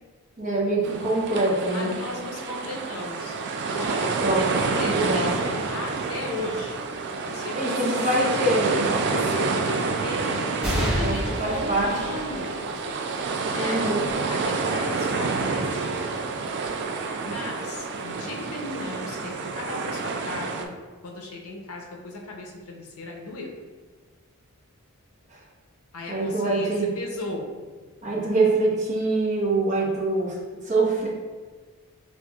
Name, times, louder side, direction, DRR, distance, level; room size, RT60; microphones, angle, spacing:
voice 1, 0.4-1.9 4.2-4.5 4.8-5.4 7.5-8.9 10.7-11.9 13.5-14.1 26.1-26.9 28.0-30.3 30.6-31.1, right 2 dB, 35° right, -5 dB, 0.9 m, -24 dB
sound 1, 0.8-20.6, right 4 dB, 50° right, 0.3 m, -28 dB
voice 2, 1.7-3.3 3.7-6.9 7.3-8.7 9.1-10.3 10.8-12.6 13.5-14.0 14.3-15.9 17.2-23.5 25.9-27.5, left 2 dB, 75° left, 0 dB, 0.7 m, -36 dB
sound 2, 10.6-17.5 18.1-18.2 19.3-19.9, equal, 5° right, 0.7 m, -33 dB
5.6 x 2.4 x 2.3 m, 1.4 s
head